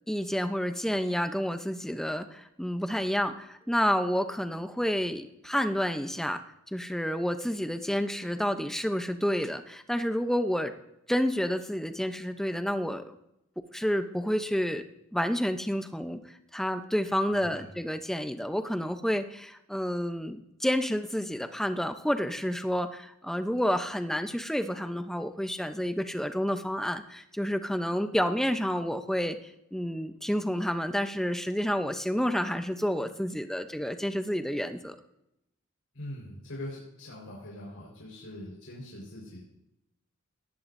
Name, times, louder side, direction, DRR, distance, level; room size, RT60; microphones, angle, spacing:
voice 1, 0.1-6.4 6.7-10.7 11.1-13.2 13.6-14.8 15.1-16.2 16.5-29.4 29.7-34.9, equal, ahead, 8 dB, 0.7 m, -29 dB
voice 2, 17.3-17.7 35.9-39.4, left 1 dB, 85° left, -4 dB, 4.6 m, -42 dB
18.5 x 15.0 x 2.6 m, 0.84 s
head